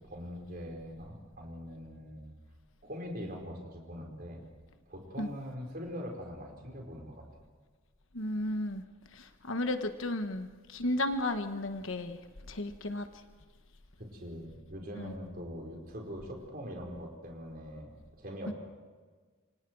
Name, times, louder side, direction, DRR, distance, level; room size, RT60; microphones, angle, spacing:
voice 1, 0.0-2.3 2.8-4.4 4.9-7.2 14.0-18.5, equal, 45° right, 0 dB, 4.8 m, -42 dB
voice 2, 8.1-8.8 9.1-12.2 12.5-13.1 14.9-15.1 18.5-18.6, left 1 dB, 65° left, 8 dB, 1.3 m, -34 dB
28.0 x 25.0 x 4.7 m, 1.5 s
head